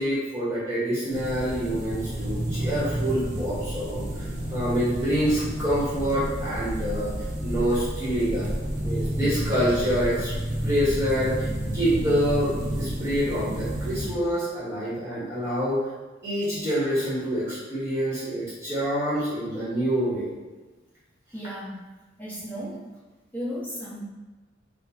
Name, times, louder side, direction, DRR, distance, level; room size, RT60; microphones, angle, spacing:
voice 1, 0.0-7.1 7.4-8.5 8.8-10.3 10.6-11.5 11.7-15.9 16.2-20.3, equal, 15° right, -10 dB, 1.2 m, -26 dB
sound 1, 1.1-14.1, right 1 dB, 40° right, 0.7 m, -30 dB
voice 2, 21.3-21.8 22.2-22.8 23.3-24.0, equal, 10° left, -9 dB, 1.1 m, -34 dB
4.4 x 2.3 x 4.2 m, 1.2 s
head